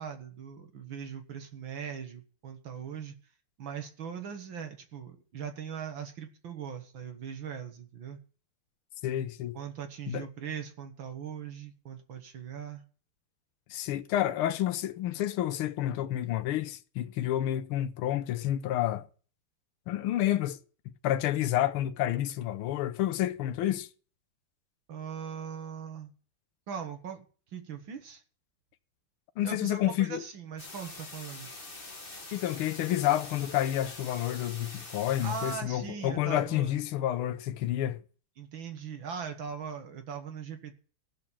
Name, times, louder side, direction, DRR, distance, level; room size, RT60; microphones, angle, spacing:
voice 1, 0.0-3.1 3.6-8.2 9.5-12.8 24.9-26.1 26.7-27.2 27.5-28.2 29.4-31.5 35.2-36.8 38.4-40.7, right 7 dB, 65° right, 2.2 m, -40 dB
voice 2, 9.0-9.6 10.1-10.3 13.7-19.1 19.9-20.6 21.0-23.9 29.4-30.2 32.3-38.0, left 12 dB, 80° left, 1.6 m, -29 dB
sound 1, 30.6-35.6, left 3 dB, 25° left, 2.1 m, -45 dB
15.5 x 6.6 x 7.4 m
omnidirectional pair, 2.4 m